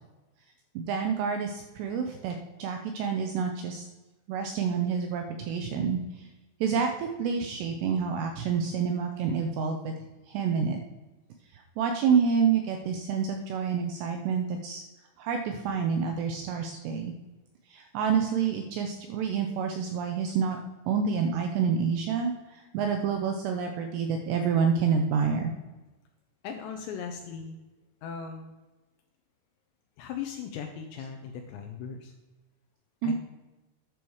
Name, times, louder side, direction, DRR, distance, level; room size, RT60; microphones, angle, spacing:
voice 1, 0.8-3.9 4.3-6.3 6.6-9.9 10.3-10.8 11.5-14.8 15.2-17.1 17.7-20.6 20.9-25.5 33.0-33.1, right 6 dB, 90° right, 4 dB, 2.4 m, -28 dB
voice 2, 26.4-27.6 28.0-28.5 30.0-32.1 33.0-33.1, left 7 dB, 85° left, 4 dB, 2.6 m, -38 dB
10.0 x 6.3 x 4.7 m, 1.1 s
omnidirectional pair, 5.7 m